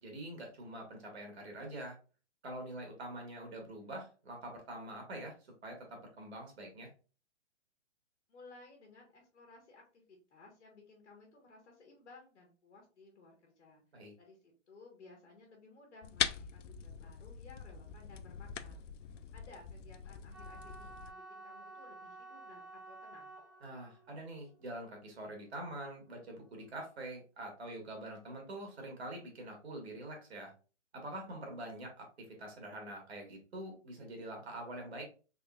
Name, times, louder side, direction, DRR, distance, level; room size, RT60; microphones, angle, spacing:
voice 1, 0.0-2.0 2.4-5.3 5.6-6.9 13.9-14.1 23.6-30.5 30.9-32.1 32.4-35.1, right 1 dB, 60° right, 2 dB, 1.4 m, -45 dB
voice 2, 8.3-13.8 14.2-18.8 19.3-23.4, left 3 dB, 65° left, 0 dB, 1.4 m, -58 dB
sound 1, 16.0-21.1, left 9 dB, 90° left, 0.5 m, -41 dB
sound 2, 20.3-26.5, right 2 dB, 10° left, 0.5 m, -53 dB
3.6 x 3.0 x 2.3 m, 0.35 s
hypercardioid pair, 170°, 36 cm